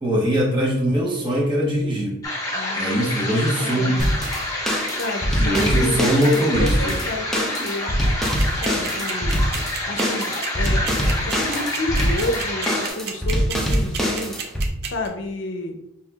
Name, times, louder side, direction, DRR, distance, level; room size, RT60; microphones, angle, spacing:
voice 1, 0.0-2.2 2.7-4.0 5.4-7.0, right 1 dB, 25° right, -4 dB, 1.1 m, -21 dB
sound 1, 2.2-12.9, left 1 dB, 20° left, 1.0 m, -28 dB
voice 2, 2.5-4.1 4.9-8.0 8.6-9.4 9.9-14.3 14.8-15.8, left 1 dB, 65° left, 4 dB, 0.6 m, -30 dB
sound 2, 4.0-14.7, equal, ahead, 0.6 m, -24 dB
sound 3, 8.4-15.1, right 8 dB, 55° right, 0.6 m, -30 dB
5.4 x 2.9 x 2.3 m, 0.84 s
head